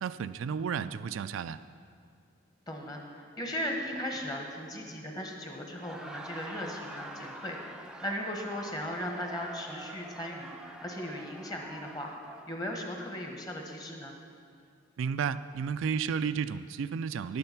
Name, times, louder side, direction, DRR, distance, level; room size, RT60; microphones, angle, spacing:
voice 1, 0.0-1.6 15.0-17.4, right 6 dB, 80° right, 13 dB, 0.3 m, -32 dB
voice 2, 2.7-10.5 10.8-12.1 12.5-14.1, equal, 20° left, 2 dB, 1.2 m, -37 dB
Laughter, 5.7-12.5, right 1 dB, 5° right, 0.5 m, -45 dB
11.0 x 8.8 x 5.9 m, 2.4 s
head